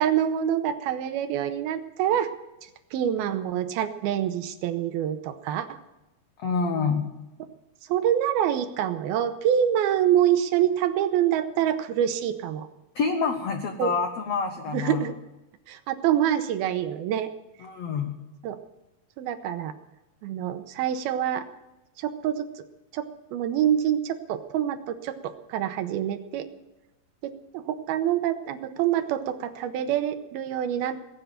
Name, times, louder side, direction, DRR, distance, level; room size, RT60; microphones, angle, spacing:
voice 1, 0.0-2.3 2.9-5.8 7.9-12.7 13.8-13.9 14.7-15.2 15.7-17.3 18.4-18.6 19.2-19.7 20.2-21.5 22.0-22.5 22.9-23.1 23.3-26.5 27.2-31.0, right 10 dB, 80° right, 10 dB, 2.6 m, -26 dB
voice 2, 6.4-7.0 12.9-15.0 17.6-18.1, left 5 dB, 90° left, 5 dB, 1.4 m, -27 dB
20.0 x 8.1 x 8.7 m, 0.98 s
omnidirectional pair, 4.6 m